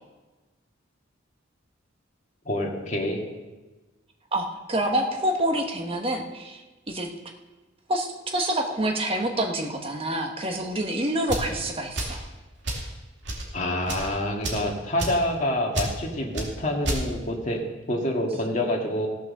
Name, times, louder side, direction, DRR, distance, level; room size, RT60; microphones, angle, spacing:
voice 1, 2.5-3.2 13.5-19.1, left 1 dB, 40° left, -1 dB, 2.0 m, -27 dB
voice 2, 4.3-6.6 6.9-7.1 7.9-12.2, right 1 dB, 30° right, 3 dB, 1.3 m, -27 dB
sound 1, 11.2-11.5 11.9-12.2 12.6-12.9 13.2-13.5 13.8-14.1 14.4-14.7 15.0-15.2 15.7-15.9 16.3-16.5 16.8-17.0, right 1 dB, 65° right, 2.4 m, -29 dB
16.0 x 6.3 x 6.6 m, 1.2 s
head